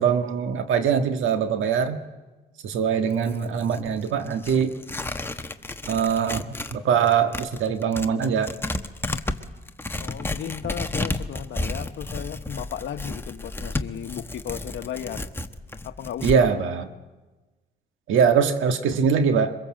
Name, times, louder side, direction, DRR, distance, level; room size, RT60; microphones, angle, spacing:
voice 1, 0.0-2.0 2.6-4.7 5.9-6.4 6.7-8.5 16.2-16.9 18.1-19.5, right 7 dB, 80° right, 8 dB, 1.6 m, -22 dB
Tearing, 3.1-6.8 7.1-16.4, left 2 dB, 10° left, 1.1 m, -32 dB
voice 2, 10.0-15.3 15.8-16.5, left 9 dB, 70° left, 9 dB, 1.2 m, -35 dB
23.5 x 21.5 x 7.7 m, 1.2 s
cardioid pair, 90°, 20 cm